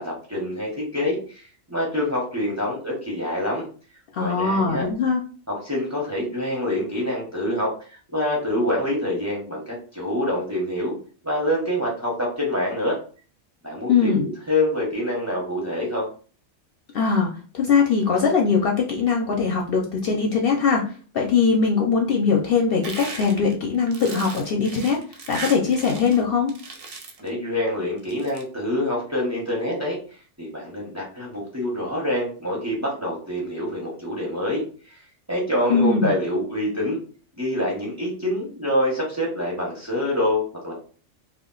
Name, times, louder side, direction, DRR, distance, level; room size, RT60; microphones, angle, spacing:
voice 1, 0.0-3.7 4.2-4.9 5.5-11.0 11.2-13.0 13.6-16.1 27.2-30.0 30.4-35.0 35.3-37.0 37.4-40.7, left 1 dB, 15° right, -2 dB, 0.7 m, -26 dB
voice 2, 4.1-5.2 13.9-14.3 16.9-20.8 21.1-25.0 25.3-26.5 35.7-36.1, left 5 dB, 60° left, 0 dB, 0.7 m, -21 dB
sound 1, 22.8-26.2 26.5-27.3 28.0-28.4, right 3 dB, 60° right, 0.4 m, -36 dB
2.3 x 2.2 x 3.7 m, 0.39 s
omnidirectional pair, 1.2 m